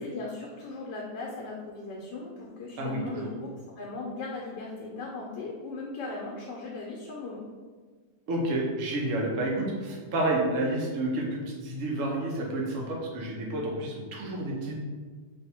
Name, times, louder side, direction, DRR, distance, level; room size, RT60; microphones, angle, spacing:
voice 1, 0.0-3.5 3.8-7.4, left 3 dB, 80° left, -2 dB, 1.2 m, -38 dB
voice 2, 2.8-3.3 8.3-14.8, right 1 dB, 60° right, -2 dB, 1.0 m, -30 dB
3.3 x 2.6 x 4.2 m, 1.5 s
omnidirectional pair, 1.9 m